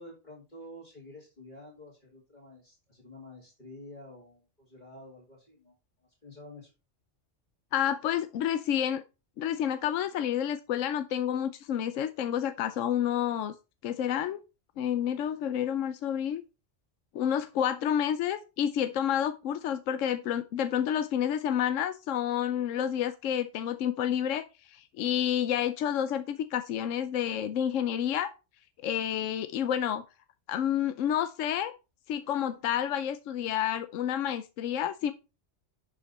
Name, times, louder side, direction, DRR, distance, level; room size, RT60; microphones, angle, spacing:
voice 1, 0.0-6.7, left 1 dB, 35° left, 2.4 m, -49 dB
voice 2, 7.7-9.0 9.4-13.5 13.8-14.4 14.8-16.4 17.1-28.3 28.8-30.0 30.5-31.7 32.1-35.1, left 9 dB, 80° left, 1.0 m, -29 dB
11.0 x 5.0 x 4.1 m
omnidirectional pair, 1.3 m